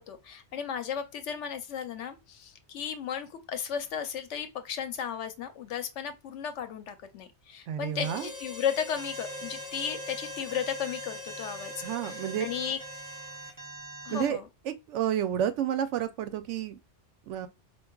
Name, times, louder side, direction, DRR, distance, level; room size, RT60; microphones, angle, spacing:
voice 1, 0.0-11.7 12.0-12.8 14.0-14.5, left 8 dB, 85° left, 1.0 m, -35 dB
voice 2, 7.7-8.3 11.8-12.5 14.1-16.8 17.3-17.5, right 10 dB, 85° right, 0.9 m, -30 dB
Harmonica, 7.9-13.6, left 2 dB, 15° left, 1.4 m, -42 dB
Alarm, 9.0-14.3, right 3 dB, 20° right, 0.9 m, -44 dB
4.6 x 2.4 x 2.2 m
omnidirectional pair, 1.2 m